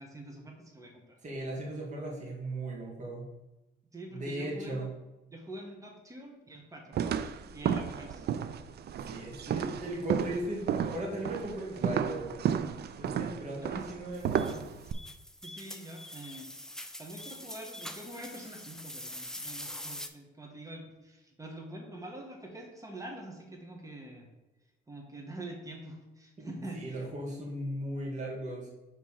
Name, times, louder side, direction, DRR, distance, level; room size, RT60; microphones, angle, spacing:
voice 1, 0.0-1.2 3.9-4.9 5.3-7.0 7.5-8.3 13.6-14.0 15.4-16.5 17.0-24.3 24.9-27.1, right 1 dB, 15° right, 1 dB, 1.4 m, -45 dB
voice 2, 1.2-3.3 4.1-4.9 8.9-12.3 13.0-14.6 26.4-26.5 26.7-28.7, right 1 dB, 35° right, -3 dB, 2.2 m, -37 dB
sound 1, 6.9-14.9, right 8 dB, 55° right, 0.4 m, -33 dB
sound 2, 14.2-20.1, left 1 dB, 5° left, 0.5 m, -44 dB
4.6 x 4.0 x 5.7 m, 1.0 s
cardioid pair, 90°, 20 cm